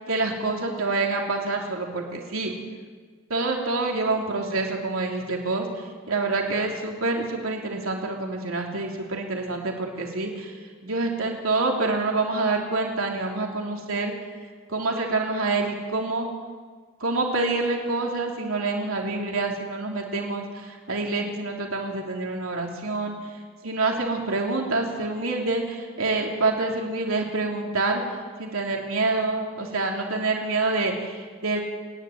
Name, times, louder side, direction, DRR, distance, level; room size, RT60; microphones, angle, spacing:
voice 1, 0.1-2.5 3.3-5.6 6.1-10.5 10.8-14.1 14.7-16.3 17.0-23.1 23.6-28.0 28.4-31.6, right 3 dB, 90° right, 1 dB, 3.2 m, -27 dB
27.0 x 10.5 x 9.2 m, 1.5 s
head